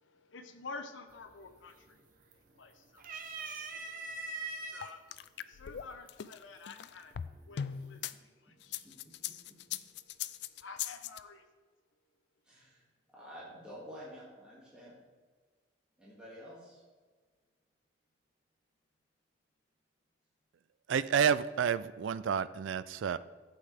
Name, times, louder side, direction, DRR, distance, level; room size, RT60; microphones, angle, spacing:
voice 1, 0.0-4.3 4.6-5.1 5.4-7.1 7.5-8.9 9.9-10.1 10.6-11.5, left 4 dB, 75° left, 7 dB, 0.8 m, -50 dB
sound 1, 1.1-1.5 1.9-2.6 3.0-4.9 5.8-5.9 7.1-7.6, right 3 dB, 45° right, 0.8 m, -41 dB
sound 2, 4.8-8.1 8.6-11.2, left 9 dB, 60° left, 0.3 m, -40 dB
voice 2, 12.4-12.8 13.1-15.0 16.0-16.8, equal, 5° right, -9 dB, 2.2 m, -49 dB
voice 3, 20.9-23.2, right 7 dB, 75° right, 16 dB, 0.3 m, -30 dB
11.5 x 7.9 x 3.5 m, 1.4 s
head